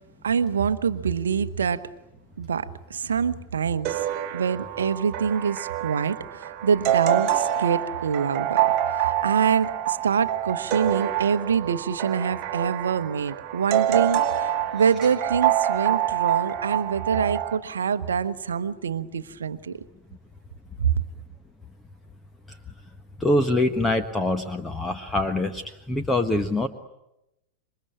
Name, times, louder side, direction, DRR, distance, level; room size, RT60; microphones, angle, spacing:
voice 1, 0.2-1.9 2.4-4.1 4.3-19.8 20.8-20.9, right 6 dB, 70° right, 13 dB, 1.0 m, -25 dB
sound 1, 3.8-17.6, right 12 dB, 40° right, 1.4 m, -26 dB
voice 2, 23.2-26.7, left 1 dB, 10° left, 8 dB, 1.4 m, -24 dB
27.5 x 24.0 x 8.8 m, 0.87 s
figure-of-eight pair, 90°, 0 cm